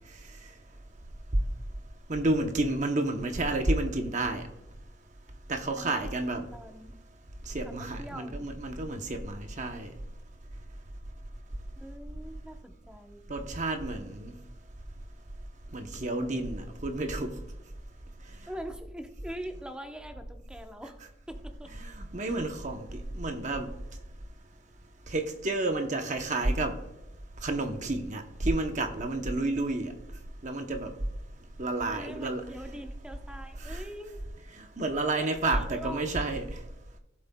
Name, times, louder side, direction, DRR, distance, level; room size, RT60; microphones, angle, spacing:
voice 1, 2.1-4.4 5.5-6.5 7.5-9.9 13.3-14.3 15.7-17.3 21.7-23.7 25.1-26.8 27.4-29.9 30.4-30.9 31.6-32.4 33.6-33.8 34.6-36.5, right 2 dB, 35° right, 5 dB, 0.8 m, -30 dB
voice 2, 6.3-7.0 7.6-8.5 11.8-13.3 18.5-21.7 22.2-22.4 31.9-34.2 35.2-36.1, equal, 5° right, 5 dB, 0.8 m, -43 dB
17.0 x 7.6 x 2.2 m, 0.94 s
head